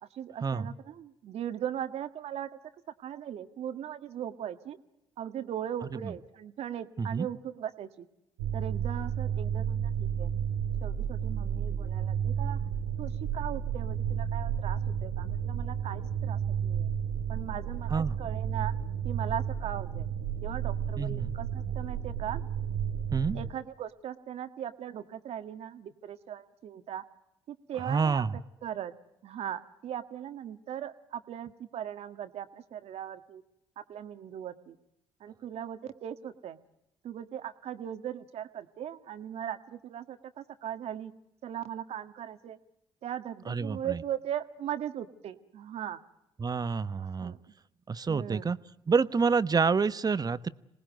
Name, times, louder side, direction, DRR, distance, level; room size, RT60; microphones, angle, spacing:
voice 1, 0.0-2.5 3.0-4.8 5.2-8.1 8.5-10.3 10.8-12.6 13.0-16.9 17.3-18.7 19.0-20.1 20.4-22.4 23.3-27.0 27.5-28.9 29.2-33.4 33.8-34.8 35.2-36.6 37.0-41.1 41.4-42.6 43.0-46.0 47.0-47.4 48.1-48.5, right 10 dB, 60° right, 10 dB, 1.6 m, -39 dB
sound 1, 8.4-23.5, right 8 dB, 85° right, 1.4 m, -32 dB
voice 2, 21.0-21.3 23.1-23.4 27.9-28.3 43.5-44.0 46.4-47.3 47.9-48.6 48.9-50.5, right 5 dB, 35° right, 15 dB, 1.1 m, -28 dB
26.5 x 19.5 x 9.2 m, 0.89 s
hypercardioid pair, 50°, 12 cm